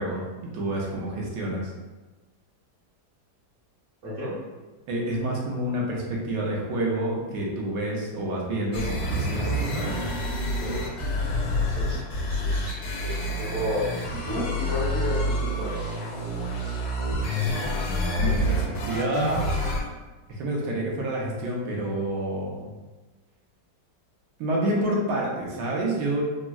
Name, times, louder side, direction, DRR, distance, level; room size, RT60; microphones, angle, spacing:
voice 1, 0.0-1.7 4.9-9.9 18.2-19.4 20.3-22.7 24.4-26.2, right 1 dB, 75° right, -2 dB, 1.2 m, -28 dB
voice 2, 4.0-4.4 10.6-10.8 11.7-16.0, left 1 dB, 50° right, -10 dB, 1.3 m, -32 dB
sound 1, 8.7-19.8, equal, 80° left, 1.3 m, -27 dB
3.5 x 2.0 x 2.3 m, 1.2 s
omnidirectional pair, 2.0 m